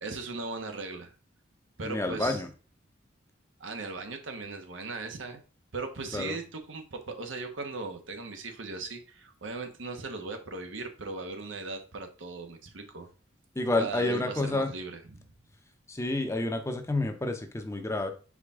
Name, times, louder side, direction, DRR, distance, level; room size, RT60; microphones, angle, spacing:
voice 1, 0.0-1.1 1.8-2.4 3.6-5.4 5.7-13.1 13.8-15.3, right 3 dB, 90° right, 5 dB, 1.1 m, -38 dB
voice 2, 1.8-2.5 6.1-6.4 13.6-14.7 15.9-18.1, left 2 dB, 15° left, 6 dB, 0.7 m, -29 dB
5.5 x 4.9 x 3.6 m, 0.36 s
head